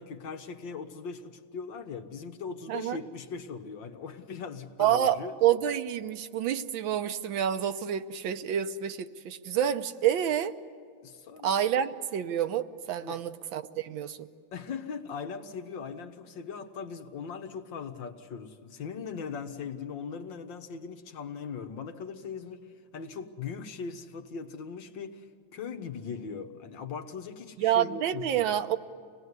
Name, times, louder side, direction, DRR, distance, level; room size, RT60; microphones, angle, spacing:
voice 1, 0.0-5.3 11.0-11.8 13.0-13.2 14.5-25.3 25.5-28.6, left 5 dB, 75° left, 6 dB, 2.0 m, -40 dB
voice 2, 4.8-10.5 11.4-14.3 27.6-28.8, right 10 dB, 90° right, 10 dB, 1.6 m, -28 dB
25.5 x 19.0 x 9.6 m, 2.3 s
omnidirectional pair, 2.1 m